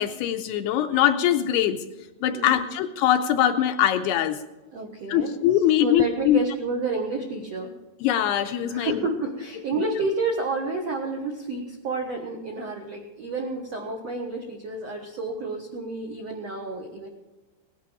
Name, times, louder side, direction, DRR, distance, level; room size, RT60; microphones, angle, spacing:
voice 1, 0.0-1.8 2.2-4.4 5.1-6.4 8.0-9.1, left 11 dB, 80° left, 7 dB, 2.5 m, -22 dB
voice 2, 2.3-2.6 4.7-5.4 5.8-7.7 8.7-17.1, right 3 dB, 70° right, 1 dB, 1.5 m, -30 dB
18.5 x 11.0 x 5.0 m, 1.1 s
omnidirectional pair, 5.1 m